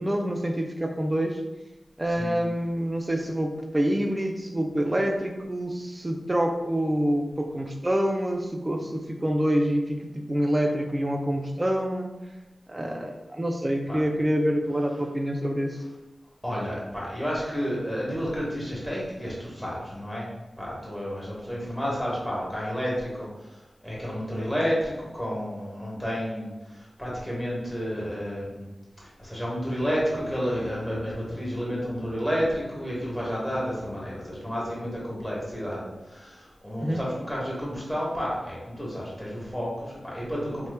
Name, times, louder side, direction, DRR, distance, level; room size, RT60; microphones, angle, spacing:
voice 1, 0.0-1.4 2.0-12.1 12.7-15.8 36.8-37.0, equal, 25° right, 4 dB, 0.4 m, -26 dB
voice 2, 2.0-2.4 13.9-14.0 16.4-20.3 20.6-28.7 29.0-40.7, equal, 10° left, -6 dB, 1.1 m, -31 dB
sound 1, 29.8-35.7, left 1 dB, 60° left, 0.5 m, -44 dB
2.9 x 2.1 x 3.2 m, 1.1 s
wide cardioid pair, 65°, 0 cm